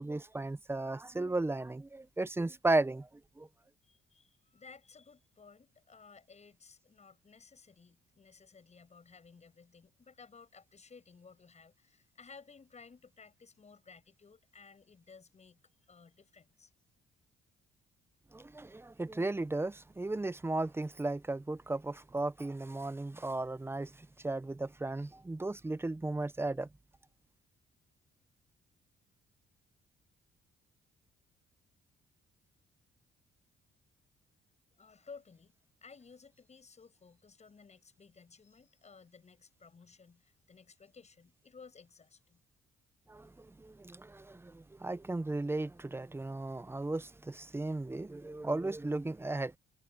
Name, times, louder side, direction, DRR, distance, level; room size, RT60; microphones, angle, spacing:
voice 1, 0.0-3.1 3.4-3.5 18.3-26.7 43.1-49.5, right 2 dB, 10° right, 0.6 m, -35 dB
voice 2, 3.8-15.6 15.9-16.7 34.8-42.4, left 5 dB, 35° left, 7.9 m, -57 dB
cardioid pair, 90°, 20 cm